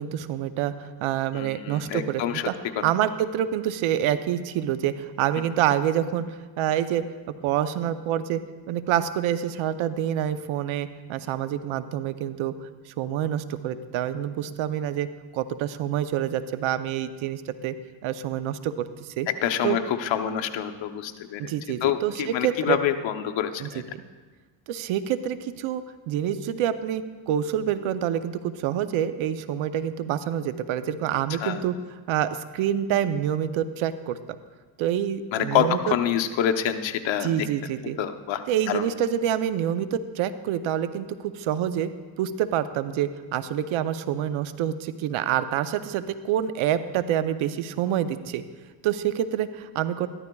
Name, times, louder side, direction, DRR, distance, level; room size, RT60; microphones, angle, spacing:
voice 1, 0.0-2.5 2.8-7.0 7.4-8.4 8.7-12.5 12.9-15.1 15.3-17.7 18.0-19.3 19.6-19.8 21.4-22.8 23.6-24.0 24.7-31.7 32.1-34.4 34.8-35.9 37.2-38.0 38.5-41.9 42.2-48.4 48.8-50.1, right 10 dB, 75° right, 12 dB, 0.7 m, -27 dB
voice 2, 1.3-2.5 2.7-2.8 19.3-21.5 21.8-23.8 31.3-31.6 35.3-37.5 38.0-38.9, left 10 dB, 65° left, 6 dB, 0.9 m, -27 dB
14.0 x 12.0 x 2.3 m, 1.4 s
cardioid pair, 90°, 49 cm